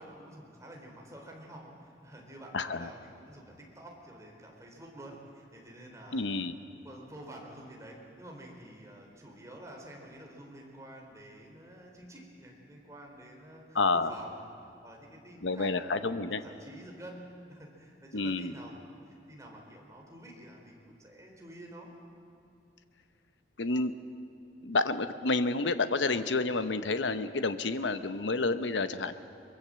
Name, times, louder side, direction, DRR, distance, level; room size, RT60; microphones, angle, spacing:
voice 1, 0.0-6.5 6.7-18.7 19.1-21.9, right 1 dB, 15° right, 0 dB, 3.9 m, -49 dB
voice 2, 2.5-2.9 6.1-6.5 13.7-14.1 15.4-16.4 18.1-18.5 23.6-23.9 24.6-29.1, left 3 dB, 85° left, 10 dB, 0.9 m, -29 dB
23.5 x 22.5 x 7.6 m, 2.7 s
head